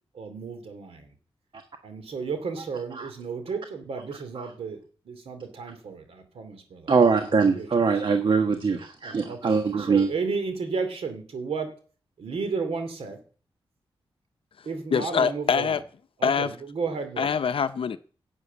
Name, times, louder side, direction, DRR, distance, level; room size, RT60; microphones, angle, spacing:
voice 1, 0.1-1.1 1.8-4.8 5.0-6.9 7.3-7.7 9.0-11.7 12.2-13.2 14.6-15.8 16.2-17.3, right 5 dB, 85° right, 2.6 m, -33 dB
voice 2, 6.9-10.1, right 5 dB, 55° right, 1.4 m, -22 dB
voice 3, 14.9-15.8 16.2-16.5 17.2-18.0, left 6 dB, 70° left, 0.6 m, -24 dB
11.0 x 8.1 x 8.4 m
wide cardioid pair, 85°, 10 cm